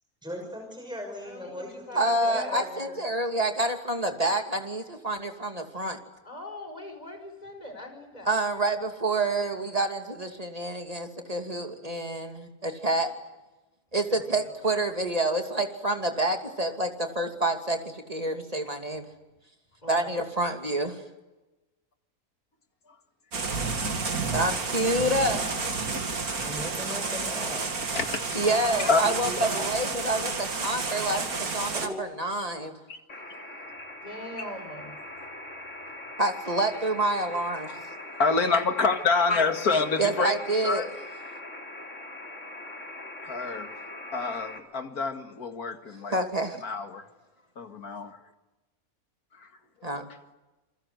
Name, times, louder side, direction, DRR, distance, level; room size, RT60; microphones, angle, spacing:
voice 1, 0.2-3.0 26.4-27.6 28.4-29.6 31.7-32.1, equal, 5° right, 1 dB, 6.1 m, -38 dB
voice 2, 1.2-2.6 6.2-8.4 13.9-14.7 19.8-20.2 34.0-35.0, left 1 dB, 25° left, 5 dB, 5.5 m, -42 dB
voice 3, 1.9-6.0 8.3-13.1 13.9-19.1 19.9-21.0 24.3-25.4 28.3-32.8 36.2-37.7 40.0-40.9 46.1-46.6 49.8-50.1, right 2 dB, 25° right, 4 dB, 2.9 m, -28 dB
sound 1, 23.3-31.9, right 4 dB, 75° right, 2.8 m, -30 dB
voice 4, 25.8-26.5 27.9-28.5 28.8-29.0 32.9-33.0 38.2-40.4 40.6-40.9 43.2-43.7 44.1-46.1 46.6-47.0 47.6-48.2, left 4 dB, 80° left, 7 dB, 2.5 m, -27 dB
sound 2, 33.1-44.6, left 1 dB, 55° left, 3.7 m, -41 dB
28.0 x 23.0 x 8.1 m, 1.1 s
omnidirectional pair, 1.6 m